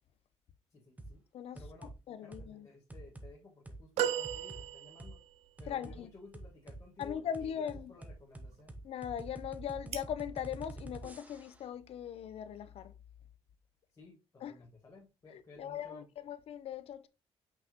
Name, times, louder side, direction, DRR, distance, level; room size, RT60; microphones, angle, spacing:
voice 1, 0.7-1.2 1.5-1.9 2.2-5.2 5.6-8.7 13.9-16.0, left 3 dB, 30° left, 1.7 m, -56 dB
sound 1, 1.0-1.2 1.6-2.0 2.3-2.5 2.9-3.3 3.7-3.8 4.2-4.6 5.0-5.1 5.6-6.0 6.3-11.6, right 2 dB, 15° right, 0.9 m, -47 dB
voice 2, 2.1-2.7 5.7-6.1 7.0-7.9 8.8-12.9 14.4-14.5 15.3-17.1, left 9 dB, 65° left, 0.7 m, -40 dB
sound 2, 4.0-5.4 6.1-6.2, right 10 dB, 85° right, 0.4 m, -35 dB
sound 3, 5.6-13.3, right 7 dB, 70° right, 1.2 m, -57 dB
5.9 x 5.6 x 2.9 m
cardioid pair, 125°, 11 cm